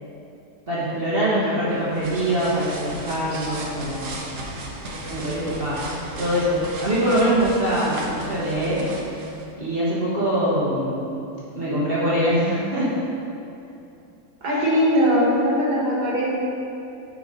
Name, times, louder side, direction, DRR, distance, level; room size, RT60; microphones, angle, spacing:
voice 1, 0.7-4.1 5.1-5.8 6.1-8.9 9.6-11.0 11.5-13.0 14.6-14.7, equal, 45° right, -9 dB, 1.0 m, -23 dB
sound 1, 1.7-9.5, right 1 dB, 60° right, 1.1 m, -36 dB
voice 2, 14.4-16.3, equal, 90° right, -5 dB, 2.0 m, -20 dB
6.4 x 4.0 x 5.1 m, 2.8 s
omnidirectional pair, 1.7 m